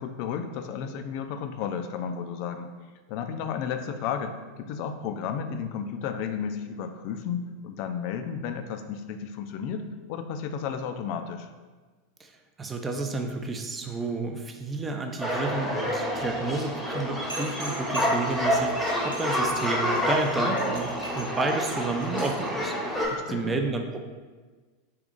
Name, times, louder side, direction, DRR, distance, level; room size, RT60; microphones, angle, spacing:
voice 1, 0.0-2.7 3.1-11.5 23.1-23.6, left 7 dB, 55° left, 8 dB, 0.3 m, -33 dB
voice 2, 12.2-24.0, right 3 dB, 20° right, 4 dB, 0.5 m, -31 dB
sound 1, 15.2-23.1, equal, 5° right, 1.0 m, -28 dB
sound 2, 17.3-22.5, right 1 dB, 85° right, 1.5 m, -41 dB
3.6 x 2.5 x 3.7 m, 1.4 s
hypercardioid pair, 90°, 0 cm